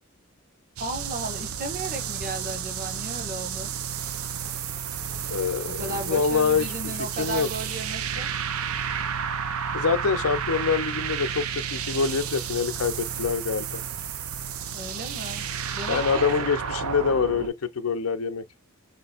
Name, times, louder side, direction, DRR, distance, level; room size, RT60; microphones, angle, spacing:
voice 1, 0.8-3.7 5.7-8.3 14.7-15.5 15.7-16.3, right 1 dB, 40° right, 1.4 m, -35 dB
sound 1, 0.8-17.5, right 7 dB, 85° right, 0.7 m, -31 dB
voice 2, 5.3-6.7 7.2-7.5 9.7-11.5 11.7-13.8 15.9-18.4, left 5 dB, 75° left, 0.6 m, -25 dB
6.7 x 3.2 x 2.4 m
head